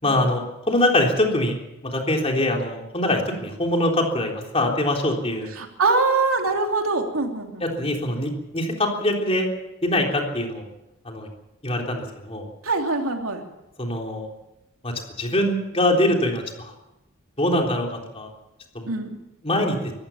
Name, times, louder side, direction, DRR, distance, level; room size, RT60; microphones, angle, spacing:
voice 1, 0.0-1.6 1.8-5.5 7.6-9.5 9.8-10.7 11.1-11.3 11.6-12.5 13.8-14.3 14.8-16.7 17.4-18.3 18.7-18.9 19.4-19.8, left 1 dB, 30° left, 1 dB, 3.6 m, -23 dB
voice 2, 5.6-7.9 12.6-13.5 18.9-19.2, right 3 dB, 90° right, 3 dB, 3.0 m, -24 dB
24.0 x 15.0 x 7.2 m, 0.94 s
head